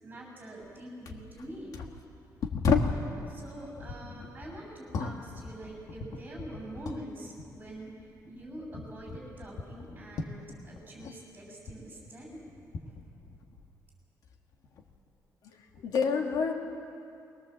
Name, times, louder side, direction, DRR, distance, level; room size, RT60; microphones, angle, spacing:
voice 1, 0.0-1.8 3.3-8.0 8.2-12.4 12.9-13.0, right 1 dB, 25° right, 0 dB, 6.8 m, -45 dB
sound 1, 0.6-0.8 1.1-3.1 3.7-7.1 7.4-11.2 11.5-13.8 14.2-15.0 15.7-15.9, left 4 dB, 65° left, 1.6 m, -35 dB
voice 2, 15.4-16.5, left 5 dB, 90° left, 1 dB, 2.7 m, -29 dB
22.0 x 21.5 x 7.6 m, 2.5 s
cardioid pair, 160°, 7 cm